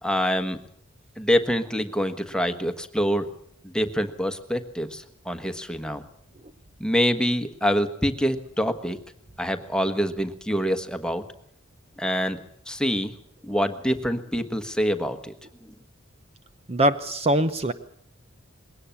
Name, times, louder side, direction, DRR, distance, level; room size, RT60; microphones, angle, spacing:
voice 1, 0.0-0.6 1.2-3.3 3.7-6.0 6.8-9.0 9.4-11.2 12.0-12.4 12.7-13.1 13.4-15.3, equal, 5° left, 9 dB, 1.4 m, -25 dB
voice 2, 16.7-17.7, right 1 dB, 30° right, 11 dB, 0.8 m, -22 dB
21.5 x 17.5 x 7.2 m, 0.68 s
head